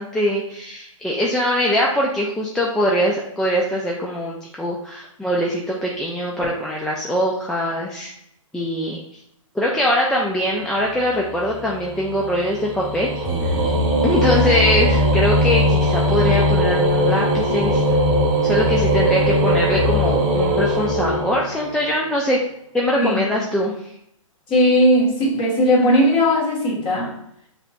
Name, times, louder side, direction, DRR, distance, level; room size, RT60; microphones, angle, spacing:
voice 1, 0.0-8.1 8.5-9.0 9.5-13.1 13.4-13.6 14.0-17.8 18.4-22.4 22.7-23.7, equal, 5° left, -4 dB, 0.3 m, -22 dB
sound 1, 11.0-21.9, equal, 25° right, 1.0 m, -20 dB
voice 2, 23.0-23.4 24.5-27.1, equal, 30° left, -3 dB, 1.5 m, -17 dB
6.5 x 2.9 x 2.4 m, 0.74 s
hypercardioid pair, 135°, 17 cm